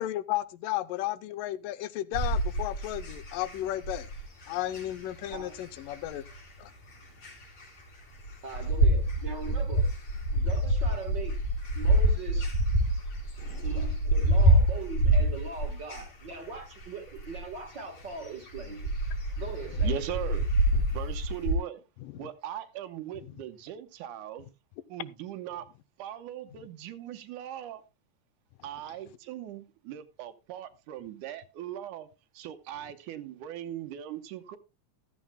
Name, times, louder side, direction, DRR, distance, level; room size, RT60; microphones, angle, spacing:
voice 1, 0.0-4.1 4.5-6.2 6.6-6.7 13.4-13.7 20.7-20.8 22.0-22.3 23.3-23.4, left 14 dB, 85° left, 2.3 m, -34 dB
sound 1, 2.1-21.5, right 1 dB, 60° left, 5.4 m, -27 dB
voice 2, 8.4-9.9 10.3-11.4 11.7-12.5 13.6-18.9 19.4-20.0, right 4 dB, 50° right, 1.5 m, -40 dB
voice 3, 19.8-20.5 20.9-21.8 22.2-24.5 24.9-25.7 26.0-27.8 28.6-32.1 32.3-34.6, right 11 dB, 75° right, 2.3 m, -39 dB
15.0 x 13.0 x 2.2 m
omnidirectional pair, 3.8 m